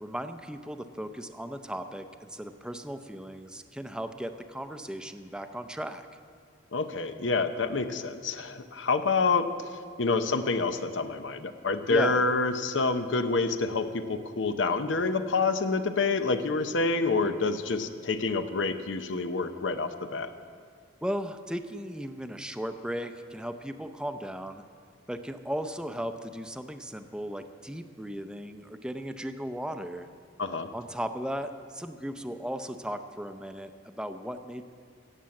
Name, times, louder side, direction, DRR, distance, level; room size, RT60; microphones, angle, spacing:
voice 1, 0.0-6.1 11.9-12.2 21.0-24.6 25.1-30.1 30.7-34.6, equal, 5° right, 8 dB, 0.5 m, -36 dB
voice 2, 6.7-9.5 10.0-20.3 30.4-30.7, left 3 dB, 90° left, 9 dB, 0.8 m, -27 dB
16.5 x 7.4 x 7.6 m, 2.2 s
head